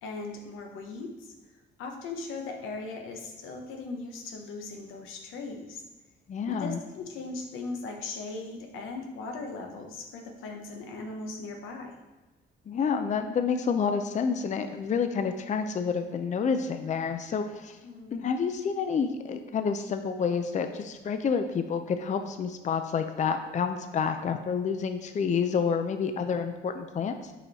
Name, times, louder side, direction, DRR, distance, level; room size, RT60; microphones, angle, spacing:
voice 1, 0.0-1.3 1.8-5.8 6.5-11.9 17.8-18.3, left 3 dB, 90° left, 3 dB, 0.9 m, -38 dB
voice 2, 6.3-6.8 12.7-17.8 18.1-27.3, left 6 dB, 35° left, 7 dB, 0.5 m, -29 dB
5.6 x 4.6 x 4.1 m, 1.2 s
cardioid pair, 90°, 20 cm